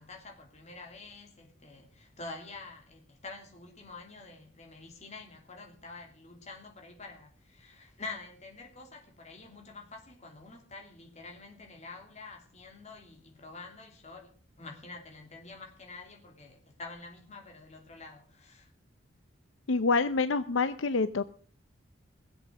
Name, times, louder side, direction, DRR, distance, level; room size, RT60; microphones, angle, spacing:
voice 1, 0.0-14.3 14.6-18.7, left 3 dB, 35° left, 3.1 m, -47 dB
voice 2, 19.7-21.2, left 4 dB, 80° left, 0.7 m, -27 dB
20.5 x 7.8 x 6.4 m
head